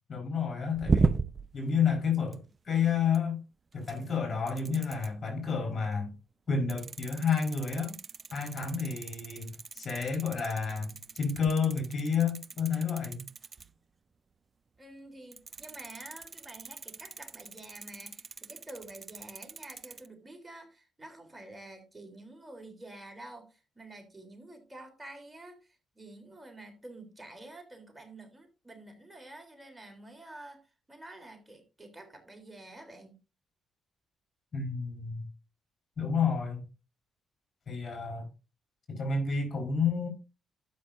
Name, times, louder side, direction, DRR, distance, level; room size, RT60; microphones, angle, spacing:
voice 1, 0.1-1.1 1.5-3.4 3.7-6.1 6.5-7.9 8.3-13.3 34.5-35.3 36.0-36.6 37.7-38.3 38.9-40.1, left 6 dB, 50° left, 4.5 m, -30 dB
sound 1, 0.7-1.5 2.2-2.5 3.1-3.2 3.7-4.2 4.5-5.1 6.7-13.7 15.3-20.1, right 4 dB, 40° right, 0.6 m, -36 dB
voice 2, 14.8-33.2, right 2 dB, 15° right, 3.5 m, -49 dB
12.5 x 8.4 x 2.6 m
hypercardioid pair, 50°, 0 cm